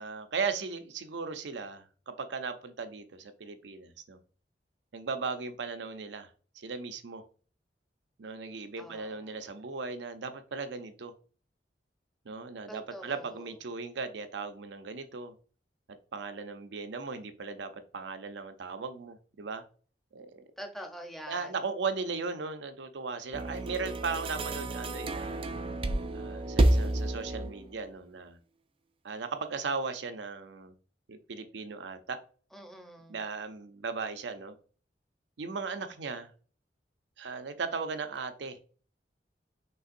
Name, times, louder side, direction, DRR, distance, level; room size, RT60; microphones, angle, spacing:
voice 1, 0.0-4.2 4.9-6.3 6.6-7.2 8.2-11.1 12.3-15.3 15.9-19.6 20.1-20.4 21.3-25.4 26.1-28.4 29.0-30.7 31.1-32.2 33.1-34.5 35.4-36.3 37.2-38.6, right 4 dB, 85° right, 9 dB, 0.6 m, -37 dB
voice 2, 8.8-9.5 12.7-13.5 20.6-21.5 32.5-33.2, equal, ahead, 3 dB, 0.7 m, -45 dB
sound 1, 23.3-27.7, right 1 dB, 30° right, 0.4 m, -29 dB
5.5 x 3.3 x 2.5 m, 0.41 s
head